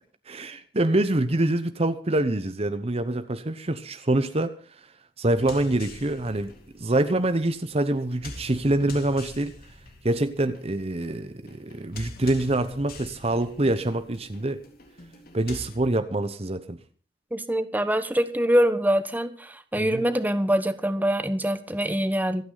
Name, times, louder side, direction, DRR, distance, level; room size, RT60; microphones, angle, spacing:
voice 1, 0.3-4.6 5.2-6.5 6.8-9.5 10.0-14.6 15.3-16.8 19.8-20.0, right 1 dB, 35° right, 10 dB, 0.9 m, -25 dB
sound 1, 5.4-15.8, left 2 dB, 55° left, 3.5 m, -44 dB
voice 2, 17.3-22.4, equal, 10° right, 10 dB, 1.2 m, -24 dB
26.5 x 9.5 x 4.0 m, 0.40 s
head